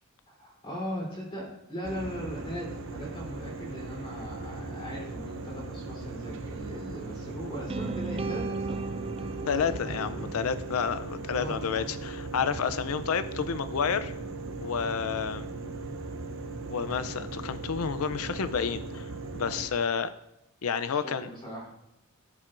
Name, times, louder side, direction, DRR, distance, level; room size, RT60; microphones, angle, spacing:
voice 1, 0.3-9.3 9.6-10.3 11.3-11.9 13.1-13.2 20.9-21.7, equal, 25° left, -3 dB, 3.6 m, -39 dB
sound 1, 1.8-19.7, right 3 dB, 65° right, 0.8 m, -38 dB
sound 2, 7.7-11.8, right 3 dB, 25° right, 0.4 m, -36 dB
voice 2, 9.5-14.1 14.6-15.5 16.7-19.1 19.3-20.1 20.6-21.3, left 6 dB, 90° left, 12 dB, 0.5 m, -30 dB
15.5 x 7.4 x 2.6 m, 0.87 s
head